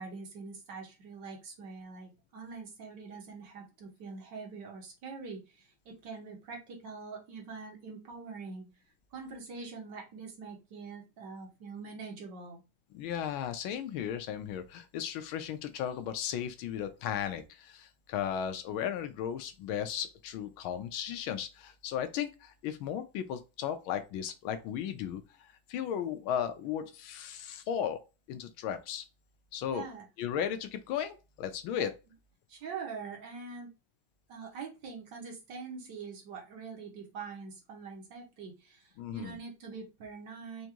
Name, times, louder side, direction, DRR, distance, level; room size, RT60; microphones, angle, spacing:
voice 1, 0.0-8.7 9.1-12.6 29.7-30.1 31.8-31.9 32.5-33.7 34.3-40.7, right 4 dB, 65° right, 1.7 m, -44 dB
voice 2, 12.9-25.2 25.7-28.0 28.3-29.0 29.5-29.8 30.2-31.9 39.0-39.4, left 9 dB, 90° left, 1.5 m, -35 dB
4.8 x 2.6 x 2.9 m
omnidirectional pair, 2.2 m